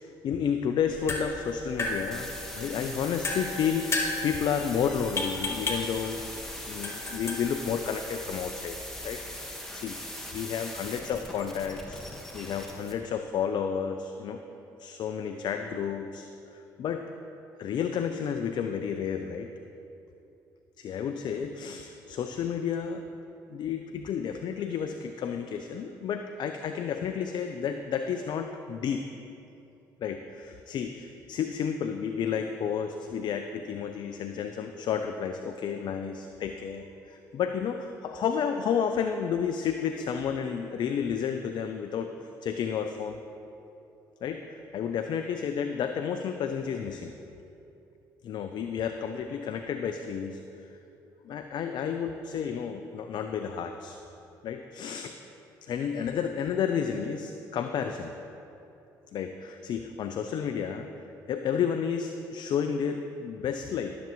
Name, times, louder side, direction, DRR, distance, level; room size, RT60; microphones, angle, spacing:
voice 1, 0.0-6.2 6.7-8.8 9.0-10.0 10.3-12.0 12.3-14.4 14.8-17.1 17.6-19.5 20.8-23.0 23.5-29.0 30.0-43.2 44.2-47.1 48.2-50.8 51.2-54.0 54.4-55.2 55.6-58.1 59.1-60.9 61.3-64.0, left 7 dB, 60° left, 6 dB, 0.4 m, -31 dB
sound 1, 0.8-9.4, left 2 dB, 30° left, 1.5 m, -35 dB
sound 2, 1.8-12.9, left 1 dB, 5° left, 1.5 m, -41 dB
12.5 x 6.9 x 3.1 m, 2.8 s
supercardioid pair, 60°, 9 cm